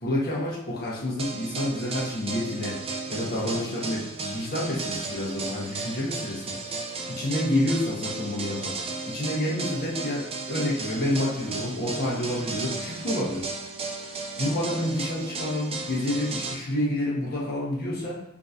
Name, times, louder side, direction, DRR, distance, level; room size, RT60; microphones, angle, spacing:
voice 1, 0.0-2.8 3.1-6.5 7.1-8.7 9.1-13.4 14.4-18.2, left 1 dB, 45° left, -6 dB, 1.0 m, -28 dB
sound 1, 1.2-16.6, right 3 dB, 25° right, 0.4 m, -34 dB
3.7 x 2.7 x 2.5 m, 0.81 s
head